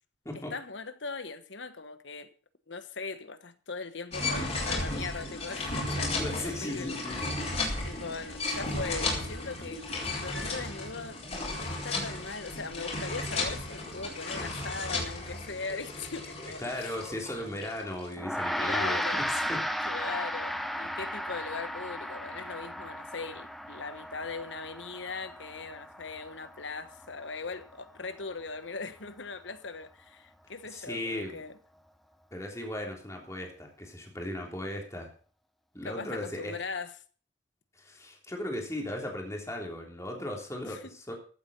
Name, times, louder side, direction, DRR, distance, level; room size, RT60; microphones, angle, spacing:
voice 1, 0.3-2.3 2.7-7.0 7.8-9.9 10.2-11.2 11.5-16.6 18.6-19.3 19.8-31.6 35.8-36.9 40.6-40.8, left 4 dB, 75° left, 1.3 m, -40 dB
sound 1, 4.1-18.1, left 2 dB, 35° left, 4.6 m, -34 dB
voice 2, 6.2-7.2 16.6-19.6 30.7-31.4 32.3-35.1 35.7-36.6 37.7-41.1, left 1 dB, 15° left, 3.3 m, -37 dB
Gong, 18.2-27.7, equal, ahead, 0.9 m, -35 dB
15.0 x 8.6 x 5.4 m
head